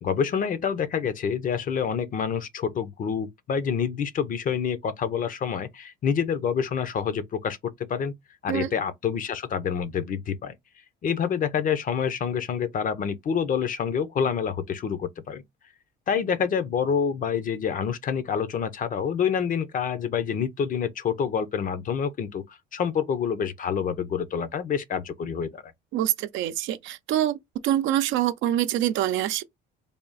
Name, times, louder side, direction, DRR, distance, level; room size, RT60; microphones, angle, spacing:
voice 1, 0.0-8.1 8.4-10.6 11.0-15.4 16.1-22.4 22.7-25.7, left 7 dB, 40° left, 0.7 m, -27 dB
voice 2, 25.9-27.4 27.6-29.4, right 12 dB, 65° right, 0.6 m, -25 dB
3.4 x 2.3 x 4.0 m
cardioid pair, 105°, 21 cm